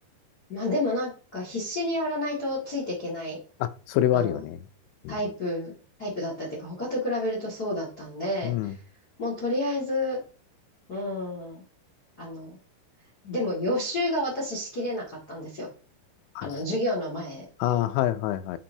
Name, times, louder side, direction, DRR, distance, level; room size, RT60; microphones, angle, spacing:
voice 1, 0.5-3.4 4.1-4.4 5.1-5.7 6.0-8.7 9.2-10.2 10.9-11.6 12.2-12.6 13.2-15.7 16.4-17.4, left 1 dB, 65° left, 0.9 m, -30 dB
voice 2, 3.6-4.6 5.1-5.2 8.4-8.7 16.4-16.5 17.6-18.6, left 12 dB, 90° left, 3.1 m, -26 dB
8.7 x 5.3 x 2.8 m
omnidirectional pair, 5.5 m